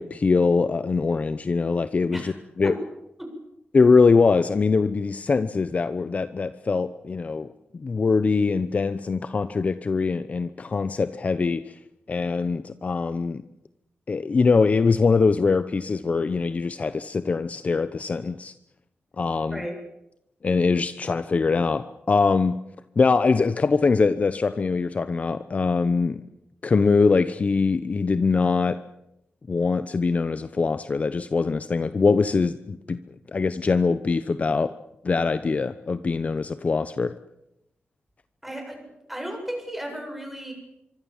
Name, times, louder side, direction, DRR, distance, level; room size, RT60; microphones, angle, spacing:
voice 1, 0.0-2.7 3.7-7.5 7.8-11.7 12.1-13.4 14.1-18.5 19.2-19.6 20.4-22.6 23.0-26.2 26.6-28.8 29.5-33.0 33.3-34.7 35.0-37.1, left 4 dB, 40° left, 12 dB, 0.9 m, -22 dB
voice 2, 38.4-38.8 39.1-40.5, right 1 dB, 5° right, 3 dB, 7.7 m, -34 dB
25.0 x 24.5 x 7.3 m, 0.84 s
wide cardioid pair, 140°, 4 cm